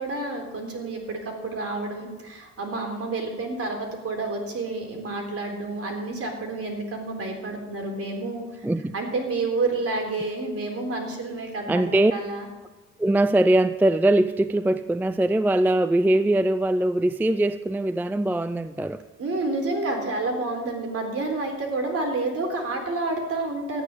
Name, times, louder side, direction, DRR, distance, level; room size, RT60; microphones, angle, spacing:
voice 1, 0.0-8.7 8.9-12.5 19.2-23.8, right 2 dB, 50° right, 2 dB, 3.8 m, -29 dB
voice 2, 8.6-8.9 11.7-12.1 13.0-19.0, right 1 dB, 5° right, 14 dB, 0.4 m, -21 dB
13.5 x 9.7 x 6.7 m, 1.2 s
cardioid pair, 90°, 30 cm